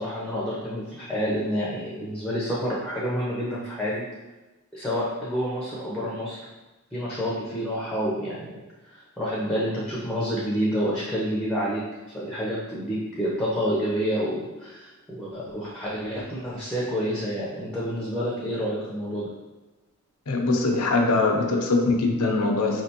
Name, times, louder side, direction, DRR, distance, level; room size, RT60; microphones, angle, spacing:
voice 1, 0.0-4.0 4.7-6.4 6.9-8.5 8.8-11.8 12.1-19.3, equal, 5° left, -7 dB, 0.7 m, -28 dB
voice 2, 20.3-22.8, left 3 dB, 90° left, 2 dB, 0.7 m, -22 dB
4.8 x 3.3 x 2.8 m, 1.1 s
head